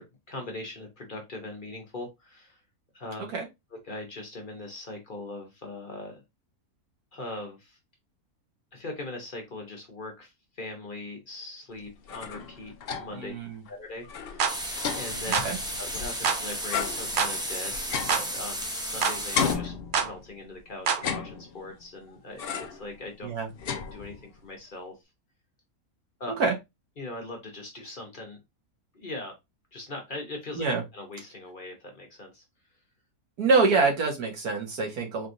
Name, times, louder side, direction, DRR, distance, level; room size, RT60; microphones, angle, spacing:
voice 1, 0.0-2.6 2.9-3.3 3.8-6.2 7.1-7.8 8.7-13.3 13.7-14.7 15.0-15.4 15.8-23.3 23.6-24.9 26.2-26.3 27.0-28.4 28.9-29.3 29.7-30.6 30.9-32.4, left 2 dB, 40° left, 2 dB, 1.1 m, -40 dB
sound 1, 11.9-13.3 13.7-13.8 14.0-16.3 16.7-18.9 19.3-20.4 20.9-21.8 22.4-22.9 23.2-24.4, left 6 dB, 55° left, 0.7 m, -34 dB
voice 2, 13.2-13.6 15.4-15.6 23.2-23.5 26.4-26.5 30.6-30.8 33.4-35.3, right 4 dB, 85° right, 1 dB, 1.8 m, -25 dB
sound 2, 14.4-14.6 15.3-15.5 16.2-16.4 17.2-17.3 18.1-18.3 19.0-19.2 19.9-20.1 20.9-21.0, right 6 dB, 60° right, 0.5 m, -25 dB
sound 3, 14.5-19.5, equal, 5° right, 0.6 m, -34 dB
4.3 x 3.1 x 2.6 m, 0.20 s
omnidirectional pair, 1.6 m